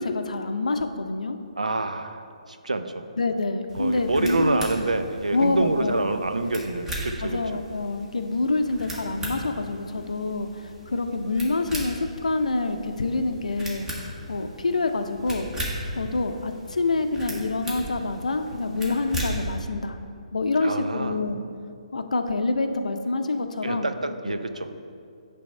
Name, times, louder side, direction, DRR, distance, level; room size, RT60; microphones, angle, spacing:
voice 1, 0.0-1.4 3.2-4.6 5.3-5.9 7.2-15.5 16.0-20.0 20.3-21.4 21.9-23.9 24.2-24.4, left 3 dB, 80° left, 7 dB, 0.5 m, -26 dB
voice 2, 1.6-3.0 3.7-7.4 20.6-21.2 23.6-24.8, right 2 dB, 90° right, 8 dB, 0.5 m, -27 dB
sound 1, 3.7-19.6, equal, 10° right, 1.2 m, -37 dB
8.7 x 3.4 x 5.4 m, 2.4 s
figure-of-eight pair, 140°, 4 cm